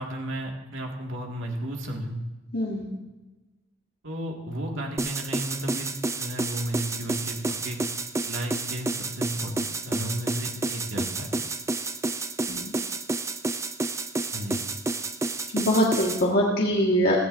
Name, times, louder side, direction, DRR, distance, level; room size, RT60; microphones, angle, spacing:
voice 1, 0.0-2.2 4.0-7.8 8.2-11.3 14.3-14.6, right 1 dB, 65° right, 0 dB, 2.1 m, -33 dB
voice 2, 2.5-2.9 12.5-12.7 15.5-17.2, equal, 45° left, -4 dB, 1.7 m, -23 dB
sound 1, 5.0-16.2, right 3 dB, 15° right, 0.4 m, -30 dB
16.5 x 13.5 x 2.7 m, 1.2 s
head